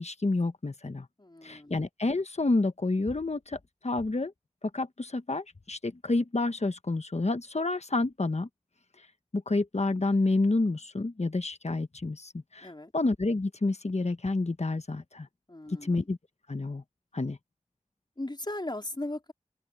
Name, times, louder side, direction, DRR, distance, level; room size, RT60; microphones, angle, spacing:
voice 1, 0.0-1.1 1.4-4.3 4.7-8.5 9.3-12.7 12.9-15.3 15.8-16.2 16.5-16.8 17.1-17.4, left 2 dB, 65° left, 1.2 m, -29 dB
voice 2, 1.2-1.7 12.6-12.9 15.5-16.1 18.2-19.3, left 1 dB, 40° left, 3.9 m, -37 dB
open air
wide cardioid pair, 40°, 12 cm